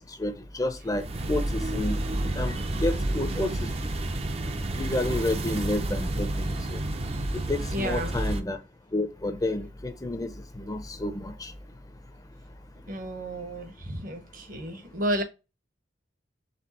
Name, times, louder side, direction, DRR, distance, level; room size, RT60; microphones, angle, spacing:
voice 1, 0.2-3.7 4.8-6.8 7.5-8.6 8.9-11.5, left 1 dB, 20° left, 0.5 m, -30 dB
sound 1, 0.9-8.4, right 1 dB, 35° right, 0.5 m, -30 dB
voice 2, 7.7-8.2 12.9-15.2, right 1 dB, 50° right, 0.9 m, -32 dB
4.4 x 3.5 x 2.8 m
head